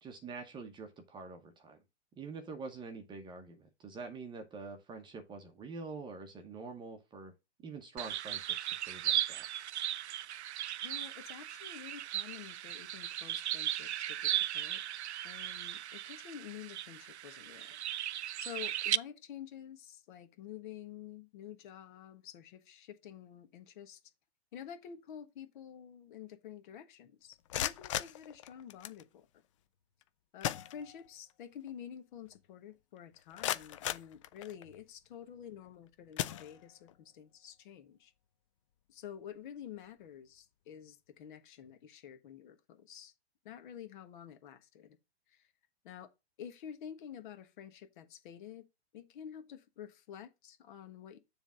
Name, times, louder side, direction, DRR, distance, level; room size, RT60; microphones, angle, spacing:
voice 1, 0.0-1.8 2.2-7.3 7.6-8.5 8.9-9.4, right 4 dB, 15° right, 1.0 m, -46 dB
sound 1, 8.0-19.0, right 12 dB, 80° right, 0.5 m, -37 dB
voice 2, 10.8-14.8 15.2-17.8 18.4-24.0 24.5-29.3 30.3-38.1 38.9-43.1 43.4-45.0 45.3-45.5 45.8-46.1 46.4-48.7 48.9-51.2, left 9 dB, 50° left, 1.4 m, -49 dB
sound 2, 27.3-29.0 30.0-30.1 30.4-31.3 31.7-31.8 32.3-32.4 33.0-34.8 35.5-35.7 36.1-37.0, left 12 dB, 30° left, 0.4 m, -38 dB
7.1 x 3.5 x 5.6 m
hypercardioid pair, 135°, 33 cm